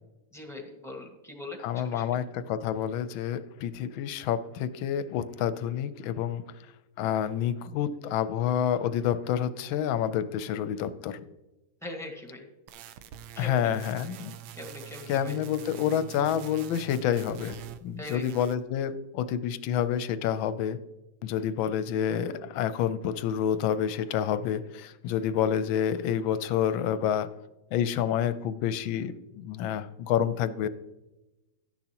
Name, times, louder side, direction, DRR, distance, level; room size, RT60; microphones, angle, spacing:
voice 1, 0.3-2.2 11.8-12.4 13.3-13.7 14.5-15.4 18.0-18.2, left 2 dB, ahead, 1 dB, 1.3 m, -41 dB
voice 2, 1.6-6.4 7.0-11.2 13.4-14.3 15.1-20.8 21.2-27.3 27.7-30.7, left 9 dB, 75° left, 13 dB, 1.3 m, -28 dB
sound 1, 12.7-17.8 18.1-18.6, right 11 dB, 75° right, 1.3 m, -45 dB
12.0 x 10.5 x 2.9 m, 1.0 s
omnidirectional pair, 2.4 m